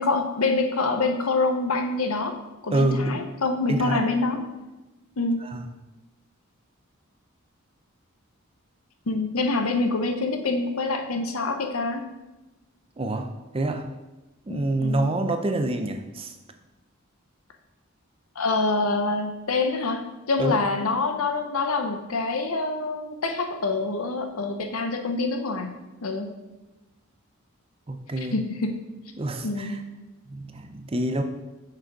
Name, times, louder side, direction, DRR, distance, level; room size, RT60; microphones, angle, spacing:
voice 1, 0.0-2.4 2.6-4.4 5.2-5.5 9.1-12.0 14.5-15.1 18.4-25.7 26.0-26.4 28.3-28.8 29.4-29.8, left 3 dB, 80° left, 6 dB, 0.8 m, -26 dB
voice 2, 2.7-3.3 3.7-4.0 5.4-5.6 13.0-13.9 14.5-16.3 20.4-20.6 27.9-28.4 29.2-29.8 30.3-31.2, right 2 dB, 25° right, 7 dB, 0.5 m, -27 dB
6.3 x 5.0 x 4.6 m, 1.1 s
head